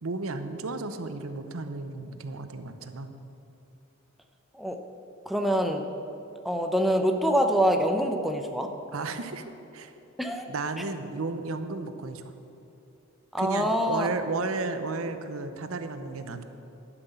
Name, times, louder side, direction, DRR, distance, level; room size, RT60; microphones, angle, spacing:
voice 1, 0.0-3.2 8.9-9.4 9.7-9.9 10.5-12.3 13.4-16.4, right 3 dB, 85° right, 9 dB, 0.8 m, -33 dB
voice 2, 5.3-5.9 6.4-8.7 10.2-10.5 13.3-14.1, equal, ahead, 4 dB, 0.7 m, -25 dB
12.0 x 6.0 x 7.9 m, 2.8 s
head